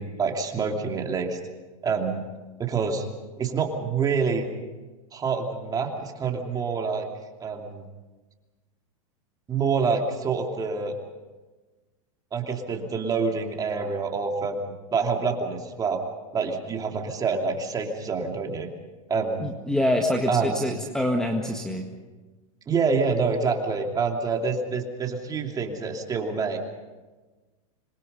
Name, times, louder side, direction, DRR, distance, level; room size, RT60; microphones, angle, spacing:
voice 1, 0.0-1.4 1.8-2.2 2.6-3.0 3.4-4.5 5.1-7.1 7.4-7.8 9.5-11.0 12.3-16.0 16.3-18.7 19.1-19.5 20.3-20.6 22.7-26.6, right 5 dB, 20° right, 3 dB, 2.8 m, -27 dB
voice 2, 19.4-21.9, left 1 dB, 5° left, 3 dB, 1.7 m, -25 dB
26.5 x 22.0 x 5.5 m, 1.3 s
supercardioid pair, 130°, 18 cm